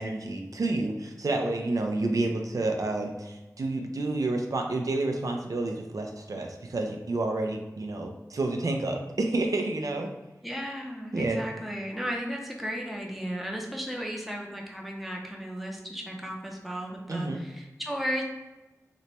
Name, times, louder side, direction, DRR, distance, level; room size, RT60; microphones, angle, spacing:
voice 1, 0.0-10.1 11.1-11.4 17.1-17.4, right 2 dB, 75° right, 3 dB, 0.4 m, -29 dB
voice 2, 10.4-18.2, equal, ahead, 0 dB, 0.6 m, -35 dB
3.0 x 2.1 x 4.1 m, 1.1 s
wide cardioid pair, 65°, 6 cm